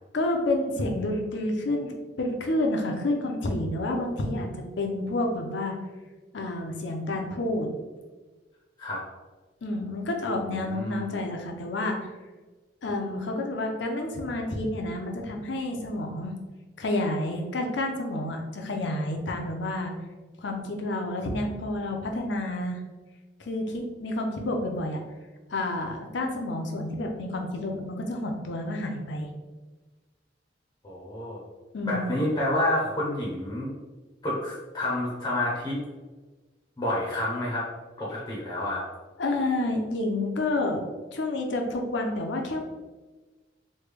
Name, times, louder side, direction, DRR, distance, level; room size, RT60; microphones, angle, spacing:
voice 1, 0.1-5.8 6.3-7.7 9.6-12.0 12.8-16.3 16.8-19.9 20.4-22.8 23.4-25.0 25.5-29.3 31.7-32.1 39.2-40.8 41.1-42.6, left 1 dB, 75° left, 3 dB, 0.5 m, -29 dB
voice 2, 10.6-11.1 30.8-31.4 31.8-33.7 34.2-35.8 36.8-37.7 38.0-38.8, left 1 dB, 20° left, -5 dB, 0.6 m, -29 dB
3.2 x 2.2 x 3.4 m, 1.3 s
head